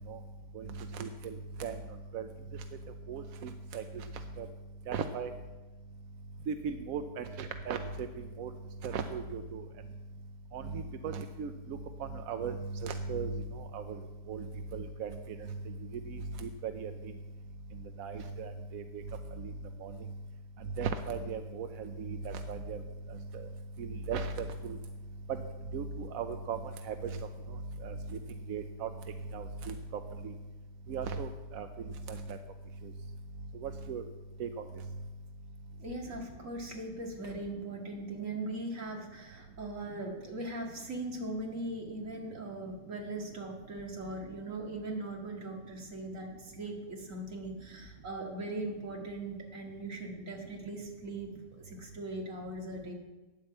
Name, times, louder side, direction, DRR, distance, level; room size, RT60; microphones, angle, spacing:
voice 1, 0.5-1.8 2.1-2.3 3.1-4.1 4.4-4.5 4.9-5.3 6.5-8.5 8.8-9.7 10.5-14.0 14.3-14.5 14.7-15.8 16.1-17.1 18.0-19.0 19.4-19.5 19.8-19.9 20.8-22.8 23.1-23.5 23.8-24.8 25.3-25.4 25.7-27.2 27.8-28.2 28.5-28.9 29.3-29.7 30.2-30.3 30.9-31.7 32.1-32.4 33.6-34.0 34.4-34.6, right 5 dB, 65° right, 7 dB, 0.9 m, -37 dB
voice 2, 35.8-51.3 51.6-52.9, right 2 dB, 50° right, 0 dB, 2.3 m, -40 dB
9.7 x 8.8 x 7.7 m, 1.2 s
omnidirectional pair, 1.8 m